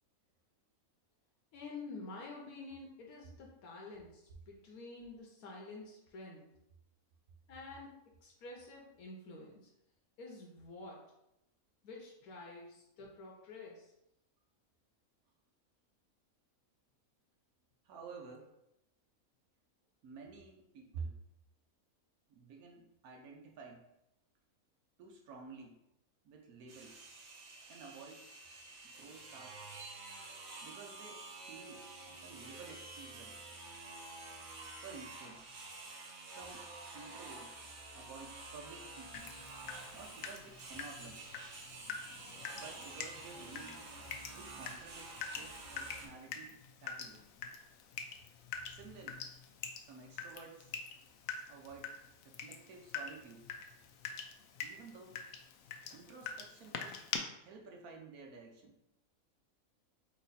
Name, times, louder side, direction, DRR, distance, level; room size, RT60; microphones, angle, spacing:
voice 1, 1.5-6.4 7.5-9.7 10.2-11.0 11.8-13.9, left 3 dB, 90° left, -2 dB, 1.2 m, -49 dB
voice 2, 17.8-18.5 20.0-21.2 22.3-23.9 25.0-25.8 26.2-27.0 27.7-28.3 28.8-29.6 30.6-33.4 34.8-35.5 36.2-37.7 37.9-39.3 39.9-41.2 42.1-44.1 44.3-46.5 46.8-47.3 48.7-49.2 49.8-50.7 51.5-52.0 52.2-53.4 54.6-55.2 55.9-57.0 57.3-58.7, right 4 dB, 90° right, 1 dB, 1.2 m, -52 dB
sound 1, 26.7-46.1, right 3 dB, 70° right, 1.4 m, -50 dB
Water tap faucet / Drip, 39.1-57.2, left 6 dB, 70° left, 0.9 m, -46 dB
4.3 x 3.0 x 4.1 m, 0.84 s
omnidirectional pair, 1.5 m